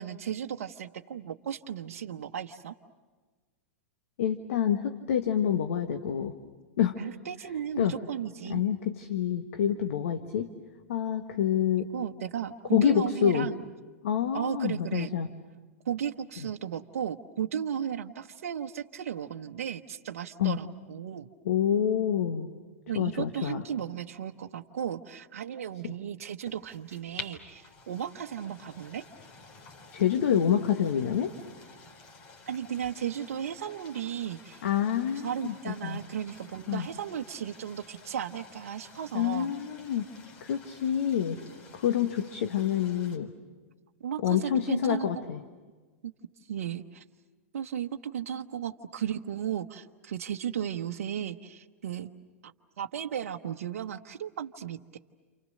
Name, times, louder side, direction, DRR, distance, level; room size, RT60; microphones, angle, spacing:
voice 1, 0.0-2.7 7.0-8.6 11.9-13.6 14.3-15.1 15.8-21.3 22.9-29.0 32.5-34.7 35.2-39.5 44.0-45.2 46.0-46.1 46.5-47.0 47.5-52.1 52.4-52.5 52.8-55.0, right 9 dB, 70° right, 4 dB, 1.0 m, -35 dB
voice 2, 4.2-6.4 6.8-7.0 7.8-7.9 8.5-10.5 10.9-11.9 12.7-13.5 14.0-15.3 20.4-20.6 21.4-22.5 22.9-23.6 25.8-25.9 29.9-31.3 34.6-36.0 36.7-36.9 39.1-40.0 40.4-41.4 41.7-43.3 44.2-45.4, left 9 dB, 70° left, 7 dB, 1.6 m, -27 dB
sound 1, 26.4-43.2, left 4 dB, 50° left, 4.1 m, -51 dB
29.5 x 28.5 x 6.6 m, 1.4 s
hypercardioid pair, 105°, 8 cm